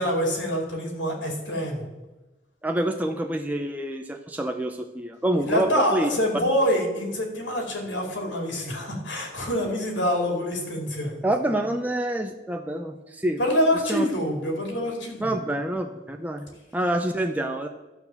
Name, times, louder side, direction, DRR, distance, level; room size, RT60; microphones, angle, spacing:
voice 1, 0.0-1.9 5.4-11.2 13.4-15.4, equal, 85° left, 1 dB, 2.5 m, -26 dB
voice 2, 2.6-6.1 11.2-13.4 13.9-14.1 15.2-16.5 16.7-17.7, right 1 dB, 10° right, 4 dB, 0.5 m, -27 dB
12.5 x 4.6 x 6.9 m, 1.1 s
head